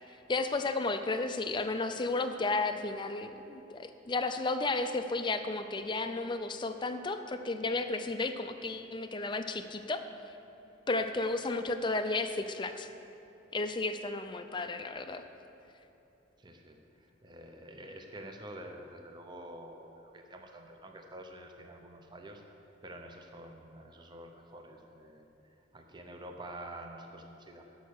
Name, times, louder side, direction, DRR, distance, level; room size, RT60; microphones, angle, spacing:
voice 1, 0.3-10.0 10.9-12.9 13.5-15.2, left 3 dB, 25° left, 8 dB, 0.5 m, -33 dB
voice 2, 16.4-22.4 22.8-27.6, right 1 dB, 25° right, 3 dB, 0.8 m, -48 dB
13.5 x 5.6 x 6.5 m, 2.9 s
head